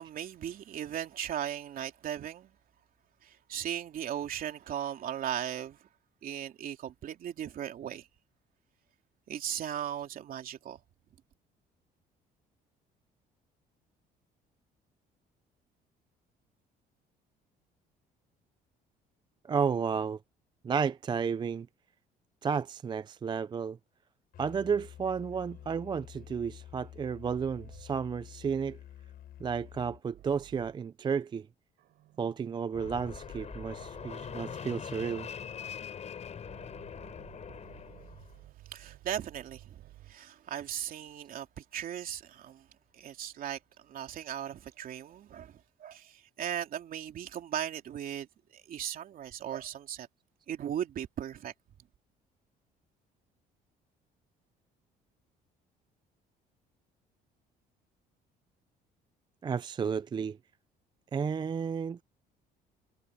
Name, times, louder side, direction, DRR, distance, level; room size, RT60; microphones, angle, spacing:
voice 1, 0.0-2.5 3.2-5.8 6.2-8.1 9.3-10.8 38.7-42.7 42.9-48.3 48.5-50.1 50.5-51.5, right 10 dB, 55° right, 3.0 m, -37 dB
voice 2, 19.4-20.2 20.6-21.7 22.4-23.8 24.4-28.8 29.4-31.5 32.2-35.3 59.4-60.4 61.1-62.0, right 6 dB, 25° right, 0.4 m, -32 dB
Musical instrument, 24.3-30.0, left 11 dB, 60° left, 5.5 m, -49 dB
sound 1, 25.3-28.1 30.1-30.9 31.8-34.8 36.4-40.3, right 15 dB, 75° right, 6.4 m, -55 dB
Fixed-wing aircraft airplane, 32.7-38.4, left 7 dB, 40° left, 4.5 m, -42 dB
cardioid pair, 110°, 17 cm